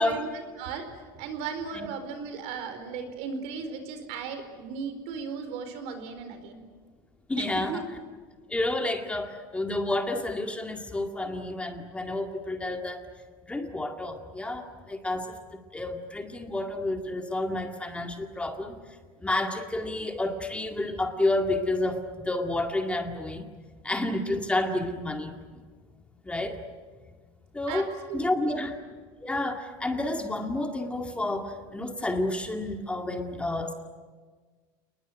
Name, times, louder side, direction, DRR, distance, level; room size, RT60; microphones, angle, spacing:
voice 1, 0.0-6.6 7.4-7.8 27.7-28.6, right 5 dB, 65° right, 8 dB, 4.5 m, -36 dB
voice 2, 7.3-7.8 8.5-13.0 13.4-18.8 19.2-23.5 23.8-25.3 26.2-26.6 27.5-28.8 29.2-33.7, left 2 dB, 10° left, 5 dB, 2.1 m, -30 dB
29.0 x 20.5 x 9.2 m, 1.5 s
supercardioid pair, 125°, 12 cm